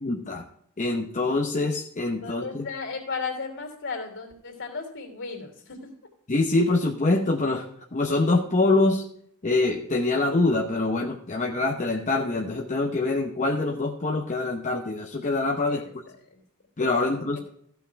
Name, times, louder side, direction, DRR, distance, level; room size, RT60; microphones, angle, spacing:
voice 1, 0.0-0.4 0.8-2.6 6.3-9.0 9.4-15.8 16.8-17.4, left 2 dB, 35° left, 1 dB, 0.8 m, -25 dB
voice 2, 2.2-5.9 15.6-16.4 17.0-17.4, left 4 dB, 60° left, 2 dB, 2.9 m, -36 dB
15.0 x 5.9 x 4.6 m, 0.70 s
head